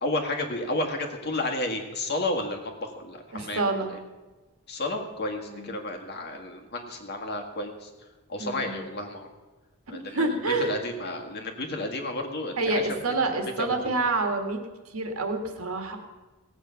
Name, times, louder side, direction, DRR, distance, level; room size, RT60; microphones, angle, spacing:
voice 1, 0.0-3.6 4.7-7.9 8.3-9.3 9.9-13.0 13.3-13.7, left 1 dB, 50° left, 2 dB, 1.8 m, -32 dB
voice 2, 3.3-3.9 5.5-5.7 8.4-8.8 9.9-10.8 12.6-14.6 14.9-16.0, right 3 dB, 85° right, 4 dB, 1.8 m, -28 dB
18.0 x 8.3 x 5.8 m, 1.2 s
head